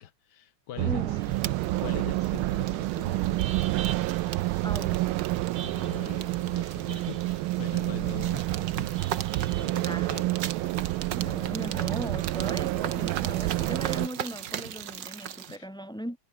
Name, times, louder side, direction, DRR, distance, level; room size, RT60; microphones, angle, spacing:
voice 1, 0.0-1.0 1.8-3.7 5.6-10.7 11.7-11.8 13.2-13.4 15.5-15.7, left 11 dB, 60° left, 1.4 m, -43 dB
voice 2, 0.8-1.3 4.6-5.1 9.8-10.2 11.2-16.2, right 1 dB, ahead, 1.3 m, -38 dB
sound 1, 0.8-14.1, right 18 dB, 80° right, 1.4 m, -29 dB
sound 2, 1.1-15.6, right 9 dB, 60° right, 1.8 m, -38 dB
omnidirectional pair, 2.4 m